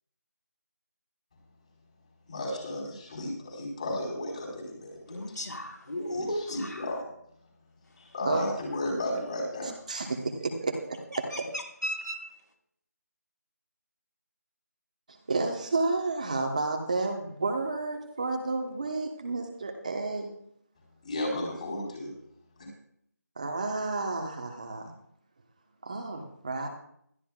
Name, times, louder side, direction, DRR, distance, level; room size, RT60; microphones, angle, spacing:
voice 1, 2.3-5.2 6.1-7.0 8.0-9.7 21.0-22.1, left 1 dB, 25° left, -2 dB, 4.5 m, -33 dB
voice 2, 5.1-6.8 11.3-11.4 11.8-12.2, equal, 80° left, 1 dB, 4.6 m, -34 dB
voice 3, 9.9-11.5 15.1-20.3 23.4-24.9 25.8-26.7, right 3 dB, 25° right, 3 dB, 1.2 m, -31 dB
21.0 x 14.0 x 2.4 m, 0.68 s
figure-of-eight pair, 175°, 9 cm